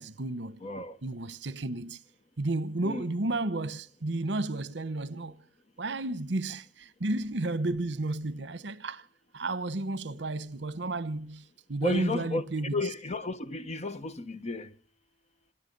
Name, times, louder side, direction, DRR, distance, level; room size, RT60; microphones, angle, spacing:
voice 1, 0.0-0.6 1.0-2.0 2.4-5.4 5.8-9.0 9.3-12.8, right 2 dB, 70° right, 1.0 m, -32 dB
voice 2, 0.6-1.0 2.8-3.0 11.8-12.4 12.7-14.7, left 2 dB, 40° left, 1.0 m, -33 dB
26.5 x 10.0 x 5.4 m
head